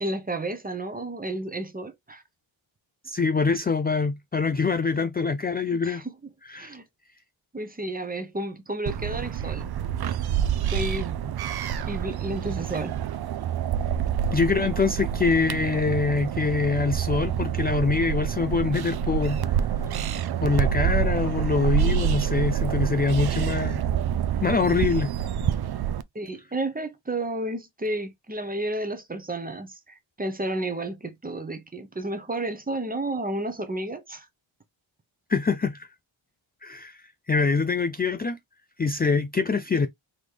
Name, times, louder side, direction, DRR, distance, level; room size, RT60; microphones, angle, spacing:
voice 1, 0.0-2.2 5.7-6.1 6.6-6.8 7.5-9.7 10.7-11.2 11.9-13.0 26.1-34.3, right 1 dB, 20° right, 0.8 m, -32 dB
voice 2, 3.0-6.0 6.5-6.7 14.3-19.7 20.4-23.8 24.4-25.1 35.3-35.9 36.6-37.0 37.3-38.4 38.8-39.9, left 4 dB, 20° left, 0.3 m, -24 dB
sound 1, 8.9-26.0, right 9 dB, 50° right, 0.5 m, -27 dB
4.0 x 3.1 x 3.2 m
cardioid pair, 90°, 49 cm